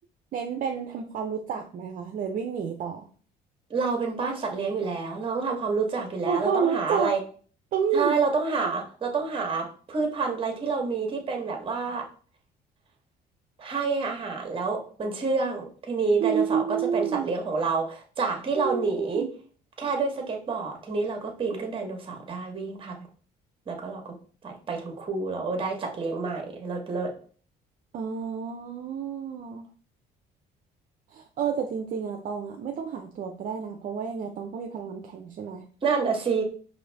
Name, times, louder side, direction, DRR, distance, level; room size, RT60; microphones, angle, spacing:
voice 1, 0.3-3.1 6.3-7.1 7.7-8.1 16.2-17.3 18.5-19.3 27.9-29.7 31.1-35.6, right 7 dB, 50° right, 3 dB, 0.5 m, -29 dB
voice 2, 3.7-7.2 7.9-12.0 13.6-19.2 19.8-23.0 23.7-24.1 24.4-27.1 35.8-36.4, right 4 dB, 30° right, 3 dB, 1.1 m, -28 dB
4.9 x 2.6 x 3.3 m, 0.43 s
cardioid pair, 110°, 17 cm